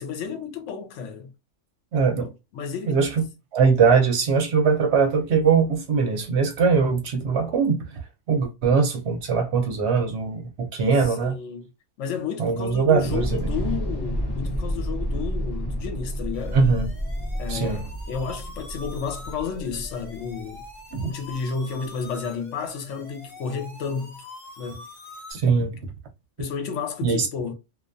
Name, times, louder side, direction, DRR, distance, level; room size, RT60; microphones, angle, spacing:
voice 1, 0.0-1.3 2.2-3.0 11.0-11.7 12.0-16.6 17.4-20.6 21.0-24.3 24.6-24.8 26.4-27.5, left 6 dB, 80° left, 0.9 m, -32 dB
voice 2, 1.9-2.3 2.9-3.2 3.5-8.0 8.3-11.4 12.4-13.5 16.5-16.9 17.5-17.8 20.9-21.1 25.3-25.8 27.0-27.3, right 5 dB, 65° right, 0.9 m, -21 dB
Thunder / Explosion, 12.9-21.1, equal, 25° left, 0.6 m, -30 dB
sound 1, 16.3-25.3, left 2 dB, 5° left, 1.0 m, -44 dB
2.3 x 2.2 x 2.5 m
omnidirectional pair, 1.3 m